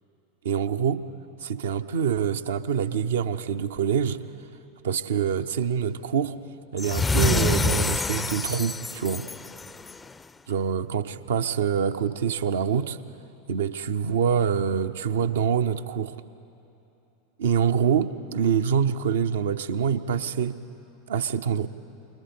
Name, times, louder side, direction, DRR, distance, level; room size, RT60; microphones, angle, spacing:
voice 1, 0.4-1.0 1.4-4.2 4.8-6.4 6.7-9.3 10.5-13.0 13.5-16.1 17.4-20.6 21.1-21.7, right 7 dB, 70° right, 10 dB, 0.6 m, -25 dB
sound 1, 6.8-10.1, left 4 dB, 15° left, 0.4 m, -26 dB
28.5 x 22.0 x 4.4 m, 2.9 s
figure-of-eight pair, 85°, 0 cm